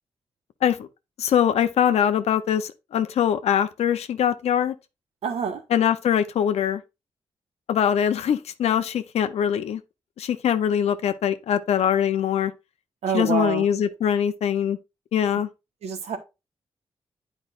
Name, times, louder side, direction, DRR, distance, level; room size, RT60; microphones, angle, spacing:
voice 1, 1.2-4.8 5.7-6.8 7.7-9.8 10.2-12.5 13.1-14.8 15.1-15.5, left 9 dB, 80° left, 0.5 m, -22 dB
voice 2, 5.2-5.6 13.0-13.7 15.8-16.2, right 7 dB, 85° right, 1.2 m, -26 dB
8.9 x 4.9 x 2.4 m
cardioid pair, 60°, 11 cm